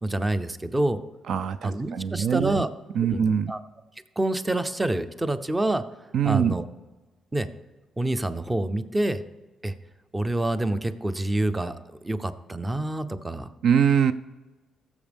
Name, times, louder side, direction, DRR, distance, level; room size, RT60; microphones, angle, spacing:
voice 1, 0.0-1.0 1.6-2.7 3.1-3.2 3.5-3.6 4.2-5.8 6.2-6.7 7.3-7.5 8.0-9.2 9.6-9.7 10.1-13.5, right 1 dB, 15° right, 12 dB, 0.6 m, -27 dB
voice 2, 1.3-2.6 2.9-3.5 6.1-6.5 13.6-14.1, right 7 dB, 65° right, 13 dB, 0.3 m, -23 dB
16.0 x 7.2 x 3.5 m, 1.2 s
cardioid pair, 90°, 0 cm